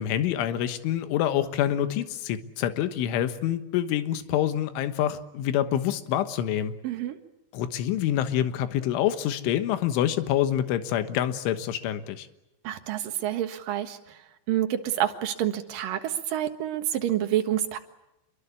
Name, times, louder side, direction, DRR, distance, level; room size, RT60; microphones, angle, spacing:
voice 1, 0.0-6.7 7.5-12.3, left 11 dB, 80° left, 10 dB, 3.8 m, -26 dB
voice 2, 6.8-7.2 12.6-17.8, right 11 dB, 60° right, 6 dB, 2.7 m, -28 dB
27.5 x 23.0 x 8.4 m, 0.93 s
omnidirectional pair, 5.5 m